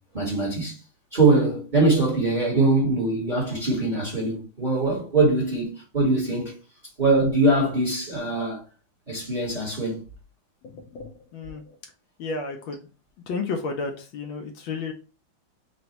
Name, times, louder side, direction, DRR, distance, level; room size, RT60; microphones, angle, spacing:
voice 1, 0.1-0.8 1.1-6.5 7.0-8.6 9.1-10.0, right 2 dB, 30° right, 1.0 m, -22 dB
voice 2, 10.6-11.8 12.2-12.8 13.3-14.9, left 4 dB, 75° left, 1.3 m, -32 dB
4.0 x 2.2 x 4.0 m
omnidirectional pair, 2.3 m